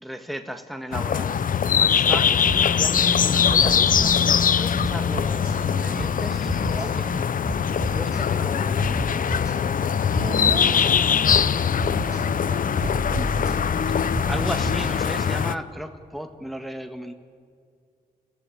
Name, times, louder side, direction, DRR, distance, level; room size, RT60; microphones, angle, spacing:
voice 1, 0.0-7.3 7.9-9.2 14.3-17.1, equal, ahead, 6 dB, 1.5 m, -35 dB
sound 1, 0.9-15.6, left 7 dB, 60° left, 0.6 m, -22 dB
sound 2, 2.4-2.9 3.4-4.2 4.8-5.6 5.9-6.2 6.4-6.9 7.4-8.2 8.8-9.6 10.1-10.9 11.3-11.5 11.8-12.2 12.8-15.0, equal, 20° left, 7.2 m, -31 dB
voice 2, 10.2-13.5, right 3 dB, 45° right, 7 dB, 1.7 m, -37 dB
28.5 x 15.5 x 8.6 m, 2.3 s
cardioid pair, 70°, 15 cm